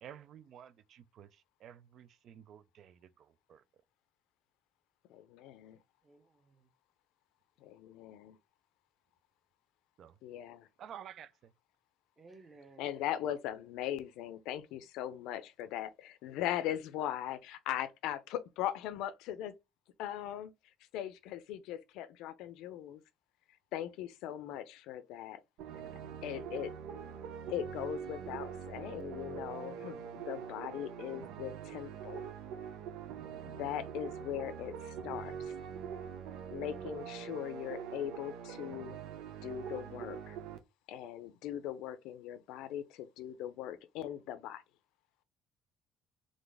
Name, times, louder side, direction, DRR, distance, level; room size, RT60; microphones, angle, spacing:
voice 1, 0.0-3.6 10.0-10.2 10.8-11.5, right 9 dB, 50° right, 0.4 m, -52 dB
voice 2, 5.1-5.8 7.6-8.4 10.2-10.7 12.8-19.5 20.0-20.5 20.9-23.0 23.7-25.4 26.2-26.7 27.5-32.2 33.4-35.5 36.5-39.0 39.4-40.4 40.9-44.6, left 11 dB, 80° left, 0.6 m, -40 dB
voice 3, 6.0-6.7 12.2-12.9, right 3 dB, 25° right, 0.8 m, -58 dB
sound 1, 25.6-40.6, right 7 dB, 90° right, 0.7 m, -44 dB
4.0 x 3.2 x 3.4 m
cardioid pair, 160°, 0 cm